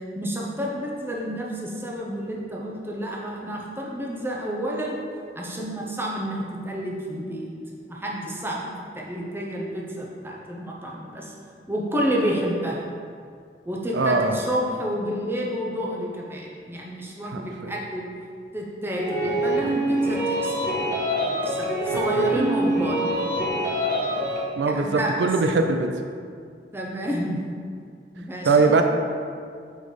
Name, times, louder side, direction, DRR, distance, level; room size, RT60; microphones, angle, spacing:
voice 1, 0.2-5.0 5.4-7.5 7.9-8.7 8.9-11.3 11.7-12.8 13.6-18.0 18.5-20.6 21.3-23.4 24.7-25.3 26.7-27.4 28.1-28.7, equal, 15° right, -3 dB, 0.7 m, -30 dB
voice 2, 13.9-14.4 17.3-17.7 22.2-22.3 24.6-25.9 28.4-28.8, right 4 dB, 80° right, 5 dB, 0.4 m, -21 dB
sound 1, 19.0-24.4, right 1 dB, 50° right, 1.3 m, -25 dB
5.0 x 4.0 x 5.1 m, 2.2 s
head